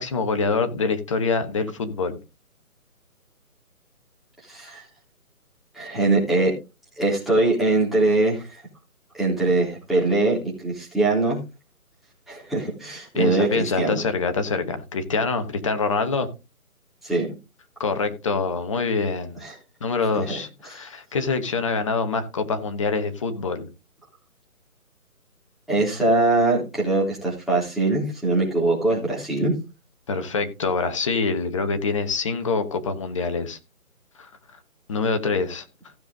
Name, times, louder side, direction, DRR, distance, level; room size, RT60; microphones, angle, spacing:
voice 1, 0.0-2.2 13.1-16.3 17.8-19.4 19.8-23.7 30.1-33.6 34.1-34.3 34.9-35.7, left 4 dB, 20° left, 1.1 m, -25 dB
voice 2, 4.5-4.8 5.7-6.5 7.0-8.6 9.2-10.4 10.6-11.4 12.3-14.0 17.0-17.3 19.4-19.5 20.2-20.4 20.7-20.9 25.7-29.5, right 2 dB, ahead, 3.4 m, -22 dB
15.5 x 7.1 x 3.8 m
figure-of-eight pair, 160°, 44 cm